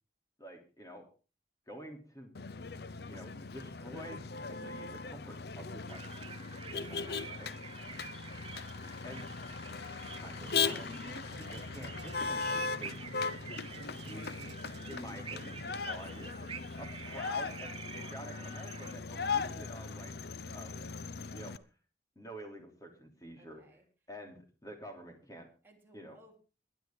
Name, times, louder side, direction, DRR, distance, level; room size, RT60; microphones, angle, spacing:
voice 1, 0.4-1.1 1.7-2.4 3.1-6.0 6.7-7.0 7.4-7.5 9.0-9.3 10.2-13.0 14.1-14.4 14.7-16.5 16.8-20.1 20.5-20.8 21.3-21.6 22.1-23.6 24.1-25.5 25.9-26.2, equal, 20° left, 3 dB, 3.2 m, -48 dB
Motor vehicle (road), 2.3-21.6, left 5 dB, 60° left, 0.7 m, -39 dB
sound 1, 5.9-18.9, right 7 dB, 30° right, 0.7 m, -49 dB
sound 2, 10.4-15.9, right 2 dB, 65° right, 1.2 m, -52 dB
voice 2, 23.4-23.9 25.6-26.4, right 1 dB, 10° right, 0 dB, 3.3 m, -60 dB
22.0 x 10.5 x 3.8 m, 0.34 s
head